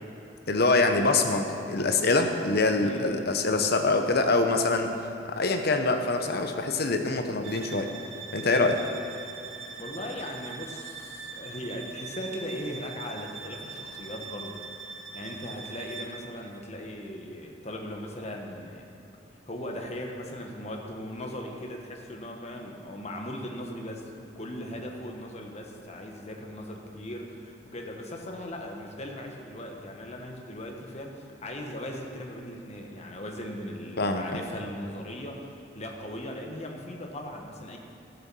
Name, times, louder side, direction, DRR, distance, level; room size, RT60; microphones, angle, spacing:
voice 1, 0.5-7.9 8.3-8.8 34.0-34.4, left 3 dB, 60° left, 5 dB, 1.0 m, -25 dB
voice 2, 2.7-3.1 9.8-14.6 15.1-18.9 19.5-24.1 24.3-37.8, left 1 dB, 35° left, 1 dB, 1.4 m, -38 dB
sound 1, 7.4-16.2, right 5 dB, 85° right, 2.4 m, -42 dB
14.0 x 7.1 x 6.2 m, 2.9 s
head